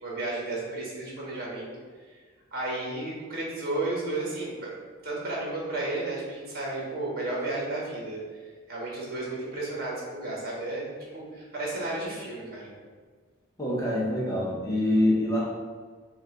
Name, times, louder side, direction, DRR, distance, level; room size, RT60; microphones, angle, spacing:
voice 1, 0.0-1.7 2.5-4.7 5.0-8.2 8.7-12.7, right 2 dB, 45° right, -4 dB, 1.4 m, -33 dB
voice 2, 13.6-15.5, left 1 dB, 15° left, -5 dB, 1.0 m, -25 dB
5.2 x 2.6 x 3.8 m, 1.5 s
head